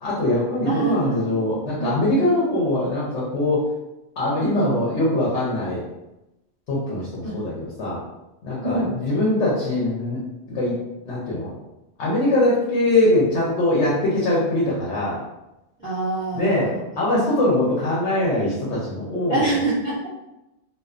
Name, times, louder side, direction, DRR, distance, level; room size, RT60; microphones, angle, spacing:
voice 1, 0.0-3.6 4.2-5.8 6.7-8.0 8.4-10.2 10.5-10.8 11.0-11.5 12.0-15.2 16.3-19.6, left 1 dB, 90° left, -6 dB, 1.0 m, -22 dB
voice 2, 0.6-1.2 1.8-1.9 7.2-7.3 8.6-8.9 15.8-16.8 19.3-20.1, right 2 dB, 15° left, -9 dB, 0.7 m, -25 dB
2.3 x 2.2 x 2.4 m, 0.95 s
omnidirectional pair, 1.1 m